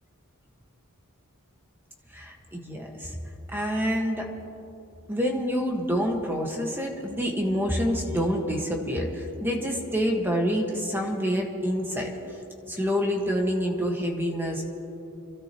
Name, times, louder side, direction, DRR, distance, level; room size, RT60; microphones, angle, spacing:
voice 1, 2.1-3.2 3.5-4.3 5.1-12.1 12.7-14.6, equal, 10° right, 0 dB, 1.7 m, -27 dB
28.0 x 13.0 x 3.1 m, 2.9 s
head